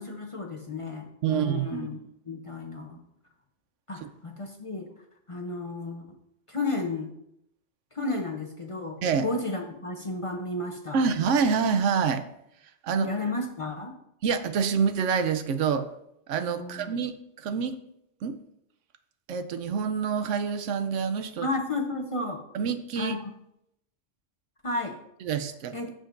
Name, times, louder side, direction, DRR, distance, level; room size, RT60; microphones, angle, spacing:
voice 1, 0.0-2.0 2.3-3.0 3.9-4.9 5.3-6.0 6.5-7.1 7.9-11.0 13.0-13.9 16.5-16.9 21.4-22.4 23.0-23.3 24.6-25.0 25.7-25.9, left 2 dB, 35° left, 2 dB, 0.6 m, -32 dB
voice 2, 1.2-2.0 4.0-4.1 9.0-9.3 10.9-12.2 12.8-13.1 14.2-15.9 16.3-17.1 17.4-17.8 18.2-18.4 19.3-21.5 22.5-23.2 25.2-25.7, right 6 dB, 80° right, 10 dB, 1.0 m, -26 dB
14.5 x 5.1 x 2.5 m, 0.78 s
omnidirectional pair, 1.3 m